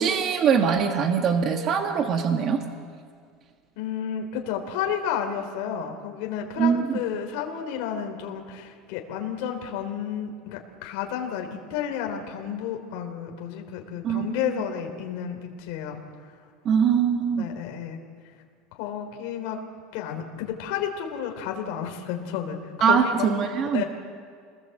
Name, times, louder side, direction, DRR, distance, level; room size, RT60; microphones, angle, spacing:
voice 1, 0.0-2.6 6.6-7.0 14.0-14.3 16.6-17.5 22.8-23.8, right 7 dB, 30° right, 5 dB, 1.4 m, -22 dB
voice 2, 3.8-16.0 17.3-18.0 18.7-19.6 19.9-23.3 23.7-23.8, left 8 dB, 55° left, 3 dB, 3.2 m, -31 dB
28.0 x 20.0 x 7.8 m, 2.1 s
cardioid pair, 175°, 0 cm